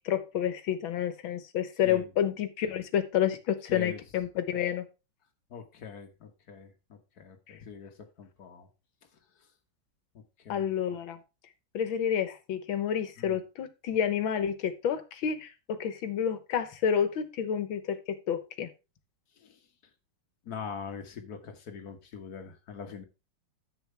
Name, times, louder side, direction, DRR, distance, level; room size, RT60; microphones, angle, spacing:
voice 1, 0.1-4.9 7.5-7.6 10.5-11.2 11.7-18.7, left 8 dB, 85° left, 1.9 m, -29 dB
voice 2, 3.7-4.0 5.5-8.7 9.4-9.5 10.1-10.7 13.2-13.4 19.4-19.6 20.4-23.0, left 6 dB, 55° left, 1.9 m, -43 dB
10.5 x 7.7 x 3.4 m
omnidirectional pair, 2.1 m